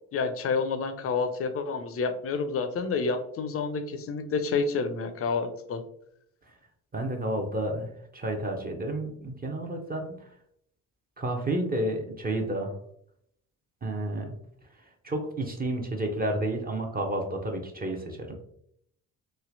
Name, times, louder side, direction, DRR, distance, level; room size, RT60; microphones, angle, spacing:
voice 1, 0.1-5.8, left 4 dB, 30° left, 8 dB, 0.5 m, -29 dB
voice 2, 6.9-10.3 11.2-12.7 13.8-14.4 15.0-18.4, right 1 dB, 20° right, 2 dB, 0.5 m, -31 dB
3.1 x 2.7 x 2.5 m, 0.71 s
figure-of-eight pair, 45°, 47 cm